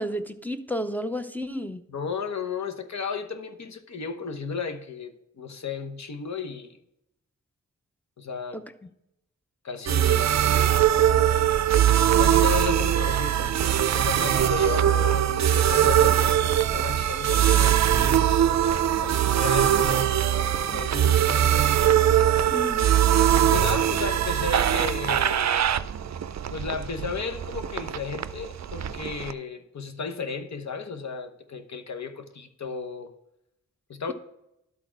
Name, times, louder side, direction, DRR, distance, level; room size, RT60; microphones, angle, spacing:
voice 1, 0.0-1.8 8.5-8.6 22.5-22.9, equal, 5° left, 0.5 m, -31 dB
voice 2, 1.9-6.8 8.2-8.6 9.6-10.6 12.2-13.6 13.9-18.3 18.6-20.1 20.6-21.7 22.1-22.4 23.5-25.7 26.5-33.1 33.9-34.1, left 5 dB, 60° left, 0.9 m, -34 dB
sound 1, 9.9-29.3, right 10 dB, 60° right, 0.4 m, -22 dB
12.0 x 4.2 x 4.5 m
wide cardioid pair, 80°, 31 cm